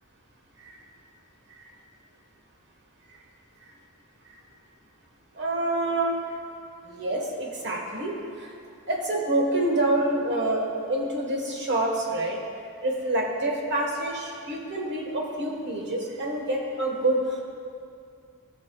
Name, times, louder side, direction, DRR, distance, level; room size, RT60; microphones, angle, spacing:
voice 1, 5.3-6.2 6.8-8.5 8.9-12.4 12.8-17.4, right 1 dB, 50° right, 0 dB, 1.4 m, -27 dB
19.0 x 6.5 x 2.3 m, 2.4 s
head